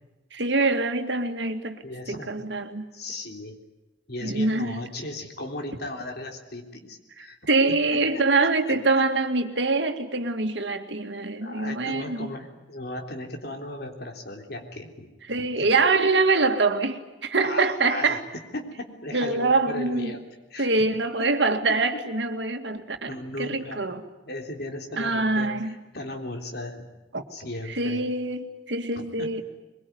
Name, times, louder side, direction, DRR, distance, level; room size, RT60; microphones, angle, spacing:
voice 1, 0.3-1.8 2.1-2.8 4.2-4.8 7.2-12.3 15.3-18.2 19.1-20.2 20.6-24.0 25.0-25.7 27.1-27.2 27.7-29.4, right 3 dB, 75° right, 6 dB, 2.2 m, -24 dB
voice 2, 1.8-2.3 2.9-3.6 4.1-7.4 7.9-9.1 11.3-15.1 15.6-15.7 17.4-18.2 18.5-20.2 20.5-20.7 21.7-21.8 23.1-24.0 24.3-26.9 27.3-28.0 29.0-29.4, left 1 dB, 60° left, 4 dB, 3.5 m, -36 dB
23.0 x 22.5 x 9.6 m, 1.1 s
head